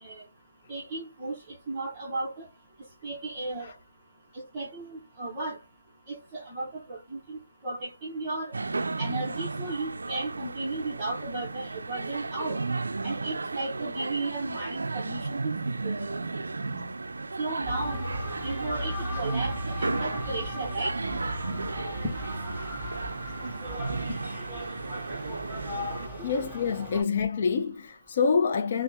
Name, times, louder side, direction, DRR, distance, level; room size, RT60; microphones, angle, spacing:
voice 1, 0.7-1.4 1.7-2.5 3.0-3.7 4.3-5.6 6.1-8.5 9.0-12.6 13.0-15.6 15.8-16.2 17.4-18.0 18.4-20.9 26.0-26.2, right 2 dB, 15° right, 0.8 m, -34 dB
sound 1, 8.5-26.1, right 3 dB, 75° right, 0.4 m, -34 dB
sound 2, 17.6-27.0, equal, 5° left, 1.7 m, -37 dB
voice 2, 26.2-28.8, left 5 dB, 35° left, 0.4 m, -26 dB
3.3 x 2.0 x 2.7 m
figure-of-eight pair, 165°, 0 cm